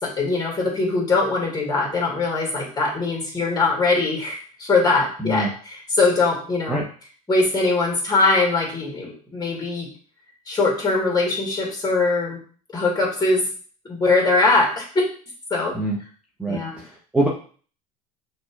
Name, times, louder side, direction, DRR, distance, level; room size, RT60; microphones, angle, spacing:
voice 1, 0.0-6.8 7.3-9.9 10.5-12.4 12.7-13.5 13.9-15.0 15.5-15.8 16.5-16.8, left 3 dB, 20° left, -1 dB, 2.1 m, -21 dB
voice 2, 16.4-17.3, right 1 dB, 5° right, -4 dB, 1.0 m, -24 dB
6.1 x 2.8 x 2.4 m, 0.42 s
hypercardioid pair, 75°, 20 cm